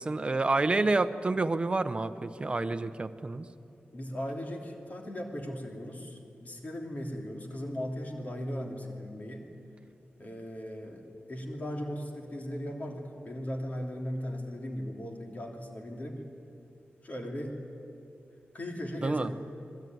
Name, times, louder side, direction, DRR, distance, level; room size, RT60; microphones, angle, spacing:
voice 1, 0.0-3.4 19.0-19.3, right 3 dB, 25° right, 10 dB, 0.9 m, -28 dB
voice 2, 3.9-9.4 10.2-16.2 17.0-17.6 18.5-19.4, equal, 40° left, 1 dB, 3.1 m, -37 dB
26.5 x 20.0 x 9.5 m, 2.7 s
wide cardioid pair, 165°, 4 cm